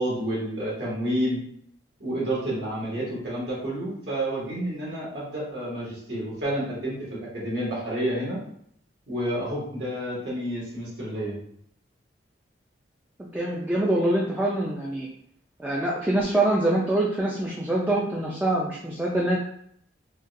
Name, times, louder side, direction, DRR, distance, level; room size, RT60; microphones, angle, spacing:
voice 1, 0.0-1.4 2.0-8.4 9.1-11.4, right 1 dB, 70° right, -6 dB, 1.4 m, -29 dB
voice 2, 13.2-15.1 15.6-19.4, right 1 dB, 10° right, -4 dB, 0.4 m, -25 dB
3.9 x 2.3 x 2.5 m, 0.68 s
head